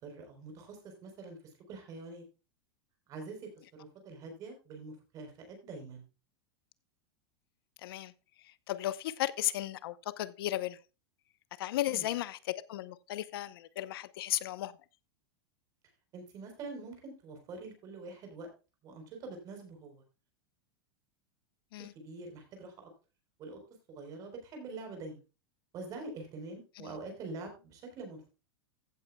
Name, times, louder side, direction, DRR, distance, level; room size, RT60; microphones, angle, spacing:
voice 1, 0.0-1.4 1.7-2.2 3.1-6.0 11.9-12.1 16.1-18.5 18.8-20.0 21.8-22.9 23.4-23.6 23.9-25.2 25.7-28.2, right 3 dB, 25° right, 3.8 m, -45 dB
voice 2, 7.8-8.1 8.4-10.8 11.6-14.7 21.7-21.9 26.8-26.9, left 14 dB, 65° left, 0.8 m, -35 dB
15.5 x 8.3 x 2.3 m
supercardioid pair, 175°, 13 cm